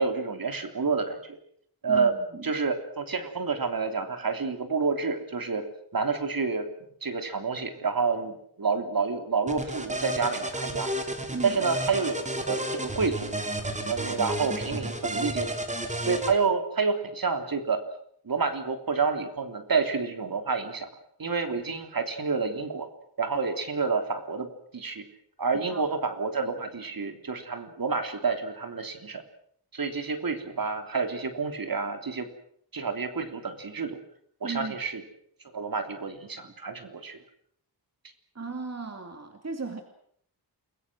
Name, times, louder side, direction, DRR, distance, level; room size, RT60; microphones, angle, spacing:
voice 1, 0.0-1.4 1.8-2.1 2.4-5.6 5.9-6.7 7.0-10.9 11.4-12.2 12.5-13.4 13.8-15.5 16.0-17.8 18.2-20.9 21.2-22.9 23.2-24.5 24.7-25.0 25.4-29.2 29.7-32.3 32.7-34.0 34.4-35.0 35.5-37.2, right 4 dB, 55° right, 7 dB, 3.4 m, -29 dB
voice 2, 1.9-2.5 11.3-11.6 25.7-25.9 34.4-34.8 36.4-36.5 38.3-39.8, right 4 dB, 35° right, 6 dB, 2.6 m, -36 dB
sound 1, 9.5-16.3, right 1 dB, 15° right, 3.2 m, -32 dB
30.0 x 21.0 x 6.3 m, 0.67 s
wide cardioid pair, 135°, 42 cm